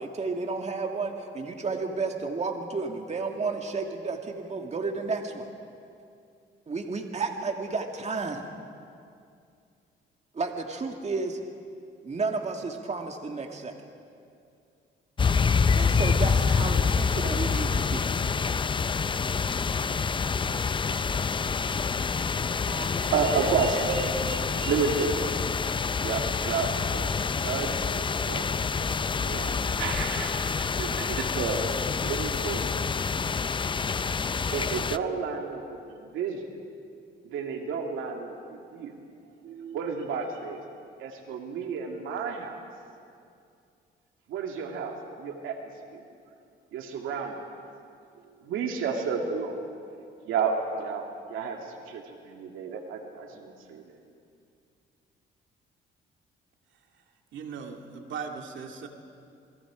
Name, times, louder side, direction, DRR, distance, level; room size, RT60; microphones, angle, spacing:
voice 1, 0.0-5.5 6.7-8.5 10.3-11.4 12.0-13.8 15.8-18.0, right 4 dB, 35° right, 3 dB, 2.0 m, -32 dB
sound 1, 15.2-35.0, left 5 dB, 25° left, 0.5 m, -27 dB
voice 2, 22.3-25.4 26.0-28.5 28.8-31.7 32.0-32.9 34.5-36.4 37.2-38.9 39.4-40.6 41.0-42.6 44.3-45.6 45.9-46.0 46.7-47.3 48.4-49.6 50.3-51.6 51.9-53.8, right 5 dB, 90° right, 2 dB, 2.3 m, -31 dB
voice 3, 57.3-58.9, right 6 dB, 70° right, 3 dB, 2.3 m, -38 dB
28.5 x 21.5 x 5.0 m, 2.4 s
cardioid pair, 90°, 20 cm